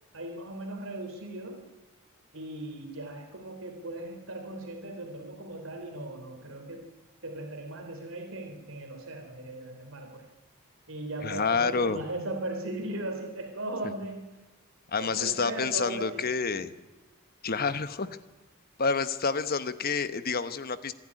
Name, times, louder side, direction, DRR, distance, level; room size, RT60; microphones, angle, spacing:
voice 1, 0.1-1.6 2.3-6.9 7.2-10.3 10.9-14.3 15.0-16.2 16.5-16.6, right 1 dB, 70° right, 3 dB, 3.6 m, -38 dB
voice 2, 11.2-12.0 14.9-16.7 17.4-18.1 18.8-20.9, left 5 dB, 45° left, 12 dB, 1.1 m, -28 dB
26.5 x 10.5 x 9.8 m, 1.1 s
head